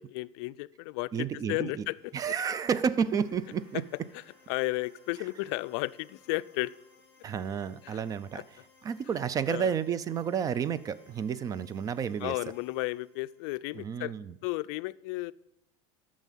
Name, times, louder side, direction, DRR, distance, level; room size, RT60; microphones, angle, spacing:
voice 1, 0.0-2.0 4.5-6.7 7.8-8.0 9.5-9.7 12.2-14.1 14.4-15.3, left 21 dB, 70° left, 16 dB, 0.4 m, -33 dB
voice 2, 1.1-1.9 2.1-3.8 7.2-8.4 8.8-12.4 13.7-14.3, right 7 dB, 25° right, 17 dB, 0.4 m, -31 dB
sound 1, 1.4-14.1, left 4 dB, 15° left, 2.2 m, -63 dB
sound 2, 2.7-7.1, right 1 dB, 55° right, 3.0 m, -64 dB
9.0 x 6.3 x 7.5 m, 0.85 s
supercardioid pair, 140°, 14 cm